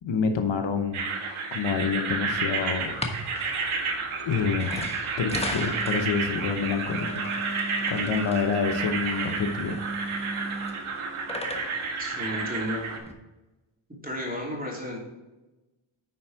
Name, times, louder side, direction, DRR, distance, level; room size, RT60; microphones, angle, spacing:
voice 1, 0.0-1.0 1.5-3.0 4.2-4.9 5.2-7.1 7.9-9.8, left 6 dB, 65° left, 6 dB, 1.0 m, -27 dB
sound 1, 0.9-13.0, right 4 dB, 80° right, 1.5 m, -31 dB
sound 2, 2.8-13.1, right 1 dB, 10° left, 1.2 m, -36 dB
voice 2, 12.0-12.9 14.0-15.2, left 1 dB, 15° right, -2 dB, 2.9 m, -33 dB
10.5 x 4.4 x 4.9 m, 1.1 s
cardioid pair, 95°, 49 cm